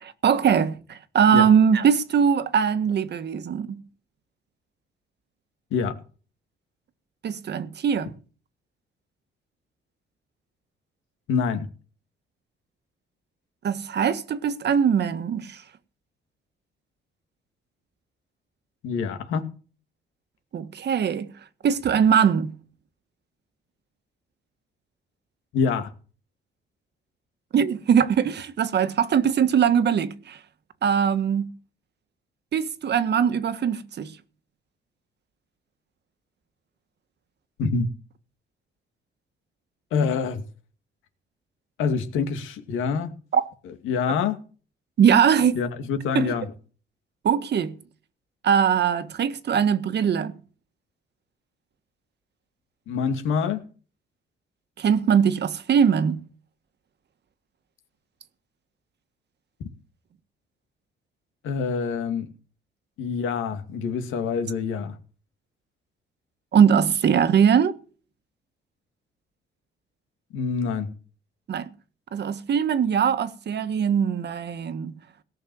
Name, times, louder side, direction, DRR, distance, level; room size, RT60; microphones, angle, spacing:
voice 1, 0.0-3.8 7.2-8.1 13.6-15.6 20.5-21.3 21.6-22.6 27.5-30.4 30.8-31.5 32.5-34.2 43.3-43.4 45.0-45.6 46.1-46.3 47.2-47.8 48.4-50.4 54.8-56.3 66.5-67.7 71.5-71.7 72.1-75.0, right 7 dB, 60° right, 1.5 m, -21 dB
voice 2, 11.3-11.7 18.8-19.5 25.5-25.9 37.6-37.9 39.9-40.4 41.8-43.1 43.7-44.4 45.6-46.5 52.9-53.6 61.4-62.3 63.0-65.0 70.3-70.9, left 5 dB, 90° left, 2.3 m, -26 dB
18.0 x 6.4 x 7.7 m
cardioid pair, 90°, 20 cm